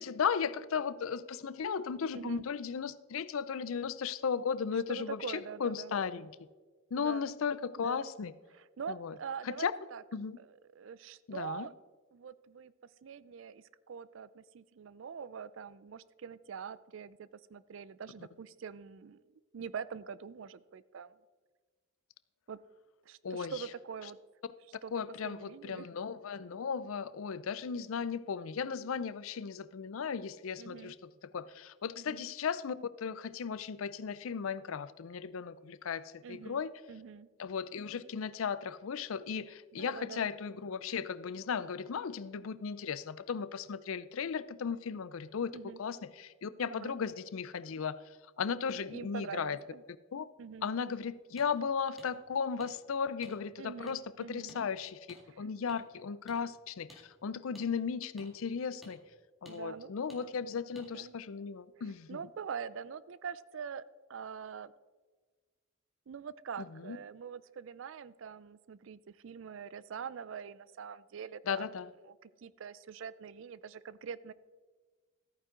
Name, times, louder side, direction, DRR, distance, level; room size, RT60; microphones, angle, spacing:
voice 1, 0.0-6.3 6.9-8.3 8.9-9.1 9.4-9.7 10.1-10.4 11.3-11.7 23.2-23.6 24.9-36.7 37.4-48.0 48.4-49.6 50.1-50.3 50.6-59.0 59.4-62.2 66.6-67.0 71.5-71.9, left 6 dB, 80° left, 15 dB, 0.5 m, -36 dB
voice 2, 4.9-6.0 7.0-7.3 7.8-8.1 8.5-10.0 10.4-11.7 12.1-12.7 13.0-19.2 19.5-21.2 22.5-22.6 23.1-24.2 24.8-25.9 30.6-30.9 32.0-32.2 36.2-37.3 39.8-40.3 45.5-45.8 46.7-47.0 48.9-49.8 50.4-50.7 53.6-54.6 55.3-55.4 59.5-60.3 60.9-61.1 62.1-63.8 64.1-64.7 66.1-71.7 72.1-74.3, right 6 dB, 65° right, 18 dB, 0.4 m, -44 dB
sound 1, 51.4-51.5 52.0-52.1 52.6-52.7 53.2-53.3 53.9-54.0 54.5-54.6 55.1-55.2 55.7-55.8 56.3-56.4 56.9-57.0 57.5-57.7 58.2-58.3 58.8-58.9 59.4-59.6 60.1-60.2 60.7-60.9, equal, ahead, 1.9 m, -54 dB
14.0 x 9.1 x 3.8 m, 1.4 s
head